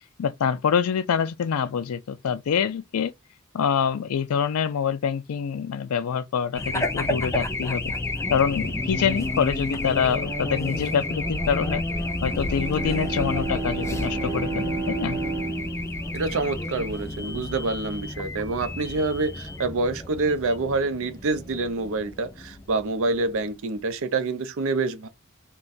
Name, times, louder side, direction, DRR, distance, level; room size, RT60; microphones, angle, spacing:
voice 1, 0.2-3.1 3.5-7.9 8.3-11.8 12.2-15.2, left 7 dB, 70° left, 0.4 m, -25 dB
Race car auto racing / Alarm, 6.5-23.5, left 1 dB, 15° left, 0.5 m, -31 dB
Bowed string instrument, 12.1-16.9, right 3 dB, 25° right, 0.9 m, -32 dB
voice 2, 16.1-25.1, right 3 dB, 65° right, 0.5 m, -27 dB
2.5 x 2.2 x 3.9 m
head